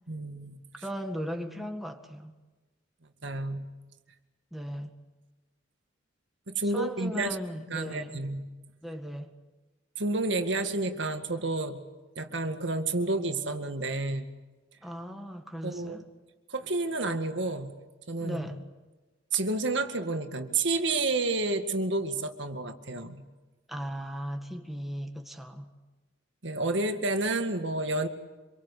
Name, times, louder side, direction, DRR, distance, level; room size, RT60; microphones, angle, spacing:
voice 1, 0.1-0.6 3.2-3.7 6.5-7.4 7.7-8.4 10.0-11.8 12.2-14.3 15.6-16.0 16.5-17.7 18.1-18.5 19.3-23.2 26.4-28.1, right 2 dB, 65° right, 2.1 m, -30 dB
voice 2, 0.8-2.3 4.5-5.0 6.6-8.2 8.8-9.3 14.8-16.0 18.2-18.6 23.7-25.7, equal, ahead, 1.9 m, -37 dB
26.5 x 23.5 x 8.3 m
head